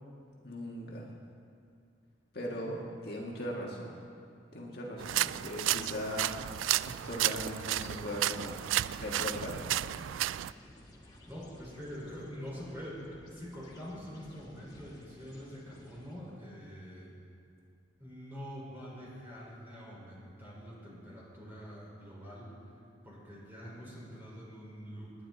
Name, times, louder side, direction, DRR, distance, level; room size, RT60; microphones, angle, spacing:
voice 1, 0.4-1.1 2.3-3.9 4.5-6.5 6.8-8.6 8.9-9.7, equal, 55° left, -2 dB, 1.8 m, -39 dB
sound 1, 5.0-10.5, right 13 dB, 85° right, 0.3 m, -32 dB
sound 2, 7.0-16.4, left 1 dB, 20° left, 1.6 m, -55 dB
voice 2, 11.3-17.1 18.0-22.5 23.0-25.1, equal, 10° right, -7 dB, 4.7 m, -45 dB
27.5 x 10.0 x 4.0 m, 2.4 s
head